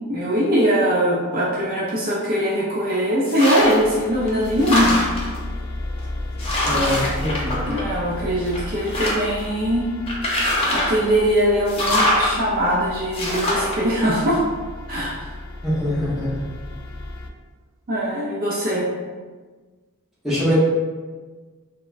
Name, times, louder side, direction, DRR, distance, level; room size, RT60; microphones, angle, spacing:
voice 1, 0.1-5.0 6.7-7.0 7.7-9.9 10.7-14.4 14.9-15.2 17.9-18.9, equal, 40° right, -5 dB, 0.4 m, -21 dB
sound 1, 3.3-3.9 4.3-5.4 6.0-6.1 6.4-8.1 8.5-9.4 10.1-11.0 11.7-12.3 13.1-13.8, left 1 dB, 25° left, 0.5 m, -23 dB
sound 2, 3.6-17.3, left 2 dB, 75° left, 0.4 m, -34 dB
voice 2, 6.6-7.7 15.6-16.4 20.2-20.6, equal, ahead, -10 dB, 0.8 m, -23 dB
3.4 x 2.0 x 2.4 m, 1.4 s
head